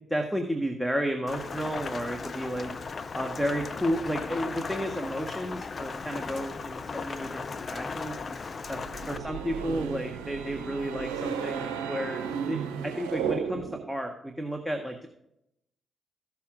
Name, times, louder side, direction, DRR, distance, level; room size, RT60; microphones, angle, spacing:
voice 1, 0.1-2.7 3.1-8.3 8.7-8.8 9.1-12.2 12.5-15.1, equal, ahead, 3 dB, 1.5 m, -32 dB
Rain, 1.3-9.2, left 4 dB, 45° left, 0.6 m, -36 dB
sound 1, 8.7-13.9, right 7 dB, 85° right, 0.8 m, -34 dB
15.0 x 7.1 x 2.6 m, 0.79 s
hypercardioid pair, 40°, 0 cm